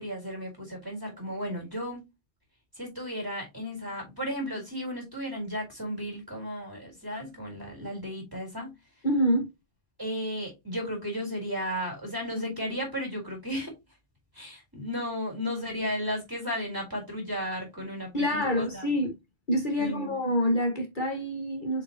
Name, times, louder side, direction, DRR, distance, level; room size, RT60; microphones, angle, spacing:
voice 1, 0.0-2.1 2.8-8.7 10.0-13.7 14.3-18.8 19.7-20.1, equal, 15° right, 4.4 m, -34 dB
voice 2, 9.0-9.5 18.1-19.1 19.5-21.8, equal, 45° left, 1.9 m, -26 dB
7.0 x 5.9 x 3.0 m
omnidirectional pair, 1.2 m